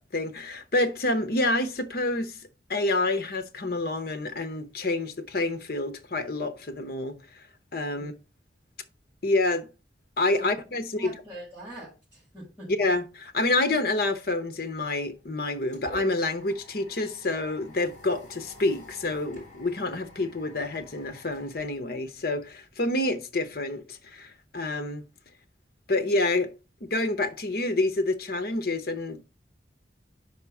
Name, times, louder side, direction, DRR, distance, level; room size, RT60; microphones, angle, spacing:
voice 1, 0.1-2.4 2.7-7.2 7.7-8.1 9.2-9.7 10.2-11.1 12.8-25.0 25.9-26.5 26.8-29.2, left 2 dB, 55° left, 0.8 m, -28 dB
voice 2, 11.0-12.7, right 1 dB, ahead, 4.7 m, -43 dB
sound 1, 15.2-22.4, left 1 dB, 40° left, 3.5 m, -49 dB
5.5 x 4.7 x 5.8 m
head